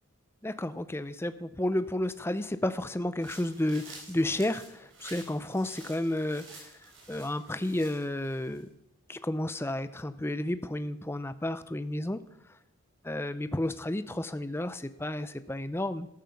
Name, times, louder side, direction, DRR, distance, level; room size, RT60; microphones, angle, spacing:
voice 1, 0.4-6.6 7.1-8.7 9.1-12.2 13.0-16.1, left 1 dB, 10° left, 12 dB, 0.5 m, -32 dB
sound 1, 3.2-8.6, right 3 dB, 60° right, 5.0 m, -51 dB
13.0 x 12.5 x 5.9 m, 0.89 s
head